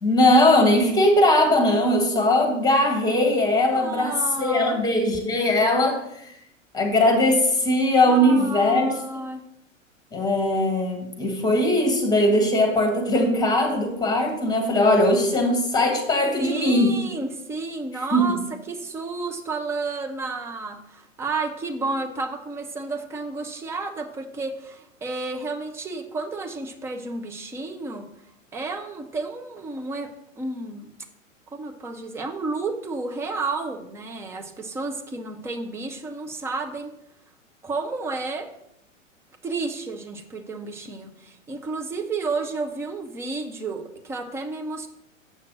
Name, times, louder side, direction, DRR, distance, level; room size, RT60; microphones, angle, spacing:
voice 1, 0.0-6.3 6.7-8.9 10.1-17.0 18.1-18.4, left 1 dB, 10° left, 4 dB, 1.7 m, -20 dB
voice 2, 3.7-4.8 8.0-9.4 16.4-18.4 18.7-28.0 28.5-30.1 30.4-30.9 31.5-36.9 37.6-38.5 39.4-44.9, right 3 dB, 5° right, 5 dB, 0.5 m, -31 dB
7.7 x 5.8 x 6.2 m, 0.78 s
figure-of-eight pair, 105°, 39 cm